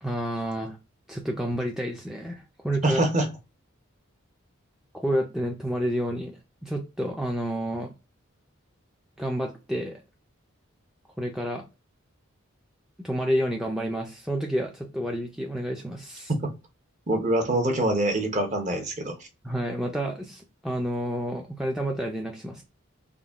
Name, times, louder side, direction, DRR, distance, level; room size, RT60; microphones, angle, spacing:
voice 1, 0.0-0.8 1.1-3.0 4.9-7.9 9.2-10.0 11.2-11.6 13.0-16.3 19.4-22.6, equal, ahead, 0.4 m, -29 dB
voice 2, 2.8-3.3 16.4-16.5 17.1-19.1, right 1 dB, 35° right, 0.7 m, -24 dB
3.8 x 2.2 x 3.4 m
head